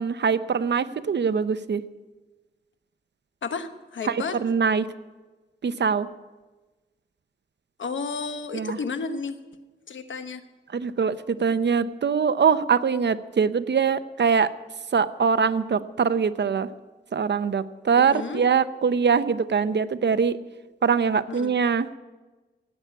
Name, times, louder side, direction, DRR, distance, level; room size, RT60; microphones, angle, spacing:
voice 1, 0.0-1.8 4.1-4.9 5.6-6.1 8.5-8.8 10.7-14.5 14.9-16.7 17.1-20.4 20.8-22.0, right 6 dB, 65° right, 13 dB, 0.7 m, -23 dB
voice 2, 3.4-4.4 7.8-9.6 9.9-10.4 17.9-18.4 21.3-21.5, left 4 dB, 90° left, 9 dB, 1.0 m, -32 dB
17.0 x 8.3 x 8.4 m, 1.2 s
cardioid pair, 65°, 19 cm